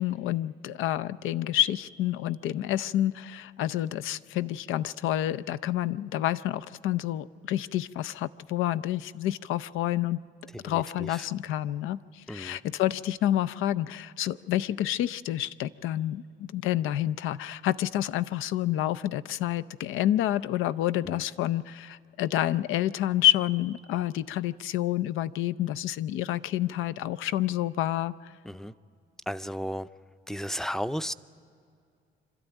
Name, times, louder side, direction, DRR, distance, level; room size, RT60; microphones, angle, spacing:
voice 1, 0.0-10.2 10.6-28.3, left 13 dB, 90° left, 16 dB, 0.5 m, -28 dB
voice 2, 10.6-11.3 12.3-12.6 21.0-21.2 28.4-28.7 29.3-29.9 30.3-31.1, equal, ahead, 14 dB, 0.5 m, -34 dB
26.5 x 12.5 x 9.0 m, 2.3 s
cardioid pair, 90°, 20 cm